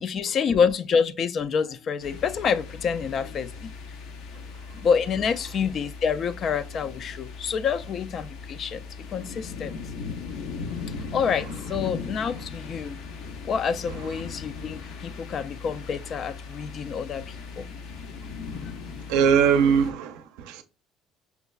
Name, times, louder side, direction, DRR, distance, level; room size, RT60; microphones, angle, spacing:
voice 1, 0.0-3.7 4.7-9.7 11.1-13.0 13.4-17.7, left 6 dB, 45° left, 0.3 m, -27 dB
sound 1, 2.0-19.9, left 5 dB, 75° left, 0.7 m, -38 dB
voice 2, 19.1-20.6, right 7 dB, 90° right, 0.5 m, -21 dB
5.6 x 2.1 x 2.3 m
cardioid pair, 120°, 0 cm